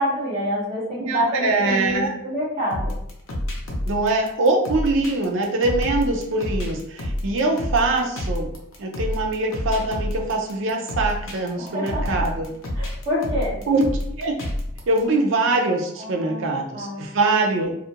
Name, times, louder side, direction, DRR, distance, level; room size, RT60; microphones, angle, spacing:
voice 1, 0.0-3.0 11.6-12.3 12.7-13.6 16.0-17.1, equal, 25° right, -14 dB, 1.1 m, -27 dB
voice 2, 1.0-2.1 3.8-8.5 8.8-12.5 13.7-14.3 14.9-17.7, right 2 dB, 65° right, 2 dB, 0.5 m, -23 dB
sound 1, 2.7-15.0, left 1 dB, 75° left, 0.6 m, -29 dB
2.4 x 2.1 x 2.7 m, 0.76 s
head